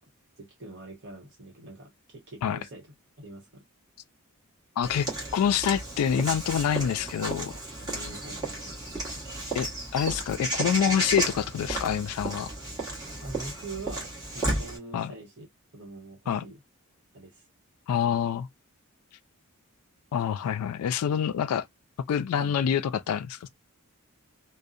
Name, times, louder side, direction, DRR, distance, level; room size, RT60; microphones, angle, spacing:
voice 1, 0.4-3.6 7.8-8.9 13.2-15.5 15.7-16.6 17.1-17.4 22.4-22.6, right 2 dB, 55° right, 1.0 m, -44 dB
voice 2, 4.8-5.1 5.3-7.5 9.5-12.5 14.9-15.1 16.3-16.4 17.9-18.5 20.1-21.7 22.1-23.5, left 8 dB, 80° left, 0.3 m, -26 dB
Walk footsteps / Bird vocalization bird call bird song, 4.8-14.8, right 2 dB, 15° right, 1.1 m, -33 dB
2.6 x 2.1 x 2.3 m
head